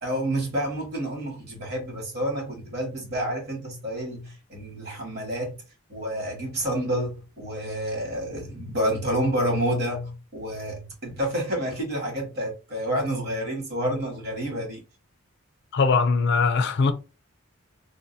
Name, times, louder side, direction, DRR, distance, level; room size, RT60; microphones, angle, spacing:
voice 1, 0.0-5.6 5.9-14.8, equal, 50° right, 1.6 m, -29 dB
voice 2, 15.7-16.9, left 4 dB, 55° left, 0.4 m, -21 dB
3.7 x 2.4 x 2.7 m
head